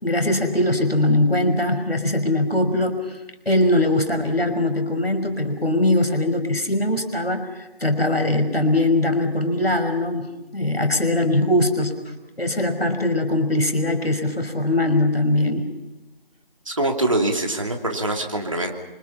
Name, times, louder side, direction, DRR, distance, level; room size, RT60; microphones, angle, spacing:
voice 1, 0.0-3.2 3.5-11.9 12.4-15.7, left 1 dB, 85° left, 6 dB, 5.7 m, -21 dB
voice 2, 16.7-18.7, right 2 dB, 35° right, 2 dB, 2.9 m, -24 dB
29.0 x 26.0 x 5.7 m, 1.0 s
figure-of-eight pair, 170°, 30 cm